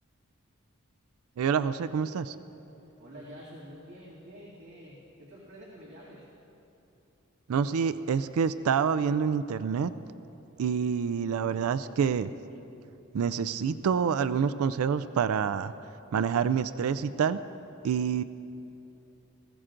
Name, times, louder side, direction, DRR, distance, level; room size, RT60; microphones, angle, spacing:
voice 1, 1.4-2.4 7.5-9.9 10.6-12.3 13.1-15.7 16.1-17.4 17.8-18.2, right 7 dB, 85° right, 13 dB, 0.4 m, -27 dB
voice 2, 3.0-6.2, equal, 55° right, -9 dB, 2.3 m, -48 dB
20.0 x 15.5 x 2.5 m, 2.9 s
head